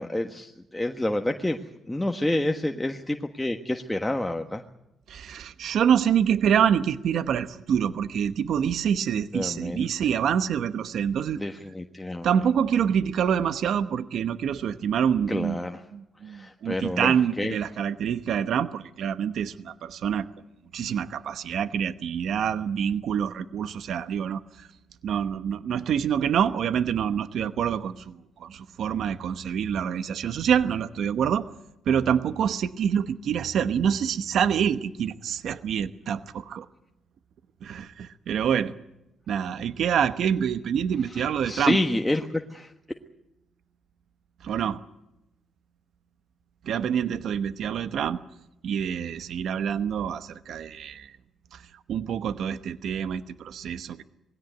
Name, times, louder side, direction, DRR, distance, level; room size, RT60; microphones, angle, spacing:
voice 1, 0.0-1.6 1.9-4.6 9.3-9.9 11.4-12.3 15.3-15.8 16.2-17.6 41.1-42.7, left 1 dB, 10° left, 4 dB, 1.4 m, -28 dB
voice 2, 5.1-11.4 12.2-15.6 15.9-20.3 20.7-24.7 25.0-31.5 31.9-36.7 37.6-38.7 39.3-41.8 44.4-44.8 46.6-48.2 48.6-51.1 51.5-51.6 51.9-54.0, right 8 dB, 70° right, 12 dB, 1.0 m, -26 dB
20.5 x 17.0 x 9.4 m, 0.90 s
cardioid pair, 90°, 0 cm